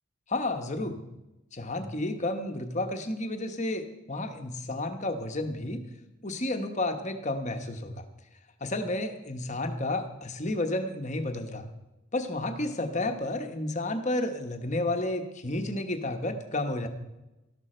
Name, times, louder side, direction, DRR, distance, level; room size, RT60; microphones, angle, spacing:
voice 1, 0.3-1.0 1.5-5.8 6.2-8.1 8.6-11.6 12.1-16.9, left 2 dB, 35° left, 6 dB, 1.1 m, -31 dB
13.0 x 11.5 x 4.4 m, 0.98 s
head